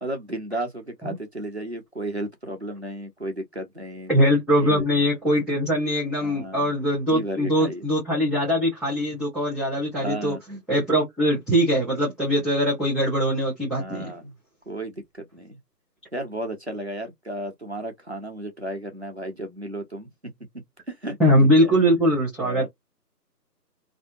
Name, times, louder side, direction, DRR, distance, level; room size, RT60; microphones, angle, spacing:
voice 1, 0.0-4.1 4.6-4.8 6.2-6.7 7.1-7.9 10.0-10.4 13.8-14.4 14.7-15.6 16.1-20.1 20.9-21.2 21.6-21.7 22.4-22.7, right 1 dB, 40° right, 0.6 m, -33 dB
voice 2, 4.1-10.4 10.7-14.1 21.2-22.7, equal, ahead, 0.6 m, -22 dB
2.5 x 2.1 x 2.5 m
figure-of-eight pair, 175°, 50 cm